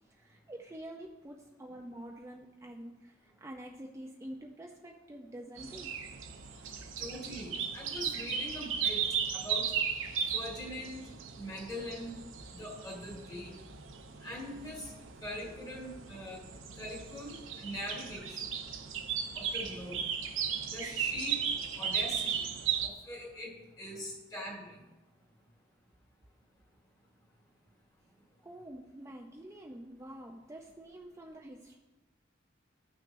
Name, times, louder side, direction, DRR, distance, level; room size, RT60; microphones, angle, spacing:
voice 1, 0.1-5.9 28.4-31.8, right 1 dB, 15° right, 0 dB, 0.4 m, -47 dB
sound 1, 5.6-22.9, right 7 dB, 80° right, 0.8 m, -36 dB
voice 2, 7.0-9.0 9.3-9.7 10.3-11.1 11.4-12.2 12.6-13.6 14.2-14.9 15.2-16.4 16.8-18.4 19.3-20.0 20.7-21.5 21.8-22.5 22.8-24.8, left 1 dB, 20° left, -2 dB, 2.0 m, -42 dB
13.5 x 6.0 x 2.6 m, 1.1 s
head